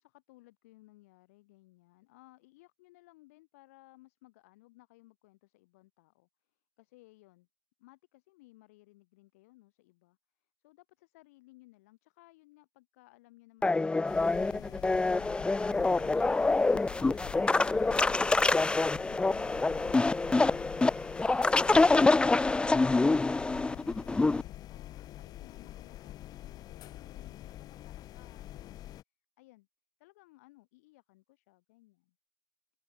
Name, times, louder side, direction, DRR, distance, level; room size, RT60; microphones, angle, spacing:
voice 1, 0.0-7.5 7.8-14.0 24.7-28.9 29.4-29.7 30.0-32.2, left 21 dB, 75° left, 5.2 m, -61 dB
sound 1, 13.6-24.4, left 3 dB, 15° left, 0.4 m, -26 dB
sound 2, 14.0-29.0, left 13 dB, 55° left, 2.5 m, -46 dB
hypercardioid pair, 70°, 8 cm